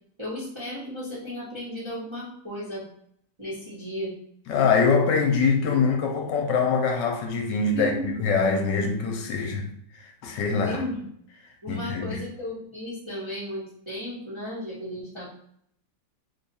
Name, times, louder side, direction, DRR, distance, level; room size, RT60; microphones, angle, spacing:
voice 1, 0.2-2.8 3.4-4.1 7.7-8.1 10.6-11.0 11.6-15.3, left 1 dB, 20° right, 0.8 m, -34 dB
voice 2, 4.5-7.9 8.2-9.7 10.0-10.8 11.7-12.2, left 5 dB, 75° left, 1.2 m, -23 dB
3.2 x 2.2 x 4.0 m
omnidirectional pair, 2.0 m